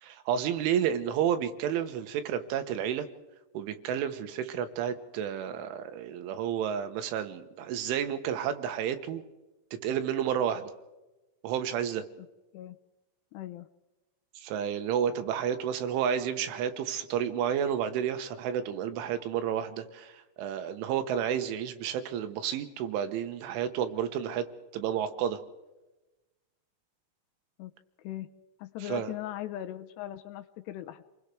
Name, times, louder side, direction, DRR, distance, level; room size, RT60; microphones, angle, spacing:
voice 1, 0.0-3.1 3.6-9.2 9.8-10.7 11.4-12.1 14.4-24.5 24.7-25.4 28.8-29.1, right 9 dB, 85° right, 9 dB, 3.7 m, -31 dB
voice 2, 13.3-13.7 27.6-27.7 28.0-28.3 28.6-31.0, left 13 dB, 75° left, 8 dB, 2.7 m, -39 dB
29.0 x 21.0 x 4.9 m, 1.1 s
omnidirectional pair, 5.5 m